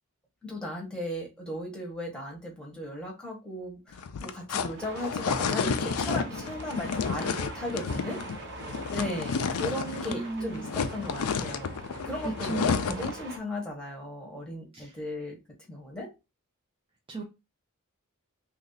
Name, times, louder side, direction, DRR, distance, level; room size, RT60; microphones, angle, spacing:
voice 1, 0.4-8.2 8.9-11.7 12.0-15.4 15.7-16.1, left 1 dB, 5° left, 1.0 m, -36 dB
sound 1, 3.9-10.3 10.5-13.2, left 6 dB, 85° left, 0.4 m, -31 dB
sound 2, 4.8-13.4, right 2 dB, 55° right, 1.0 m, -43 dB
voice 2, 10.1-10.7 12.5-13.1 14.7-14.9 17.1-17.2, right 3 dB, 25° right, 0.5 m, -36 dB
3.0 x 2.7 x 3.9 m
head